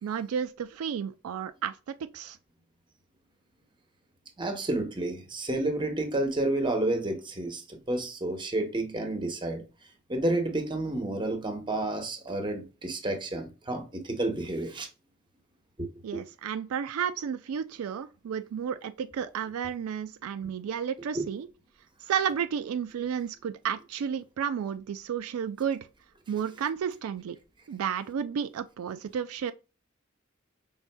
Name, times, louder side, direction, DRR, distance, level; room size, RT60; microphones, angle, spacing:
voice 1, 0.0-1.8 2.1-2.4 16.0-21.5 22.1-25.9 26.3-27.4 27.7-29.5, right 8 dB, 80° right, 0.4 m, -32 dB
voice 2, 4.4-9.6 10.1-14.9 15.8-16.2 21.1-21.3, right 2 dB, 25° right, 0.9 m, -30 dB
5.6 x 3.5 x 2.2 m
head